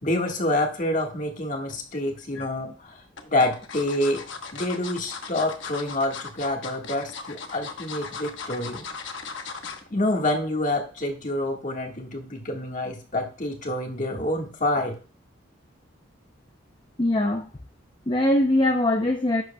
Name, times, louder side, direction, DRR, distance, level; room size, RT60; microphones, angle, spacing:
voice 1, 0.0-4.2 4.5-8.8 9.9-14.9, left 1 dB, 40° left, 2 dB, 1.6 m, -27 dB
sound 1, 1.9-2.5 3.2-9.9 10.3-10.5 10.8-10.9, left 5 dB, 65° left, 1.1 m, -37 dB
voice 2, 17.0-17.5 18.1-19.4, left 1 dB, 25° left, 4 dB, 0.6 m, -22 dB
11.0 x 7.6 x 2.2 m, 0.40 s
head